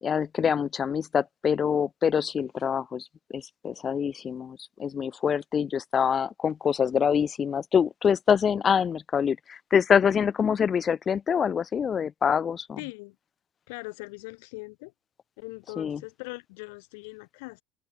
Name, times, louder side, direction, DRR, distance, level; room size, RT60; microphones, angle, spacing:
voice 1, 0.0-12.8 15.8-16.0, left 7 dB, 30° left, 0.4 m, -25 dB
voice 2, 12.8-13.1 13.7-14.9 15.4-17.6, left 29 dB, 60° left, 1.8 m, -40 dB
figure-of-eight pair, 65°, 0 cm